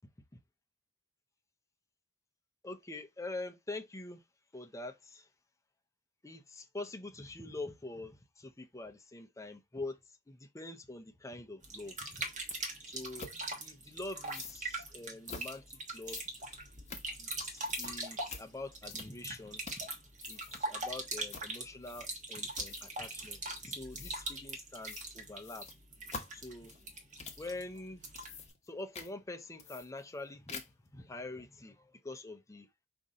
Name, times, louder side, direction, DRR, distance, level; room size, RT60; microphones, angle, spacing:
voice 1, 2.6-4.2 4.5-5.3 6.2-12.2 12.9-13.3 13.6-16.2 17.2-19.6 20.3-25.7 26.3-26.7 27.4-28.0 28.7-32.7, left 2 dB, 15° left, 0.5 m, -45 dB
sound 1, 11.6-28.5, right 2 dB, 40° right, 1.2 m, -42 dB
sound 2, 12.5-12.6 13.2-13.4 14.2-14.6 15.3-15.6 16.0-17.4 17.7-18.0 18.3-18.5 18.9-19.3 19.6-19.9 20.2-20.6 21.3-21.5 21.8-22.2 22.5-23.0 23.9-24.2 24.8-25.1 25.4-27.5 28.0-28.7 28.9-29.1 29.6-30.2 30.5-30.9, left 4 dB, 35° left, 0.9 m, -46 dB
5.2 x 2.6 x 3.7 m
head